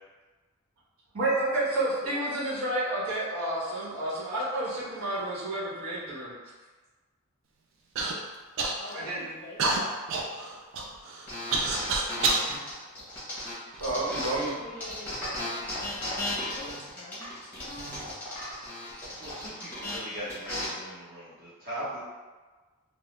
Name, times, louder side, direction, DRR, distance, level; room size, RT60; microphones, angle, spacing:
voice 1, 1.1-6.3 8.9-9.3 12.4-12.6 13.8-14.5, right 1 dB, 80° right, -9 dB, 1.0 m, -30 dB
voice 2, 2.0-2.3 8.8-9.9 13.9-15.6 15.9-17.3, left 1 dB, 35° left, -5 dB, 0.5 m, -45 dB
Human voice / Cough, 8.0-8.1 8.6-9.1 9.6-12.5 13.2-14.0 14.8-14.9 15.6-15.9, right 3 dB, 60° right, 0.3 m, -29 dB
sound 1, 11.3-14.5 14.8-20.6, left 1 dB, 10° left, 0.8 m, -35 dB
voice 3, 19.0-22.0, equal, 40° right, -9 dB, 0.9 m, -39 dB
2.3 x 2.0 x 2.9 m, 1.3 s
head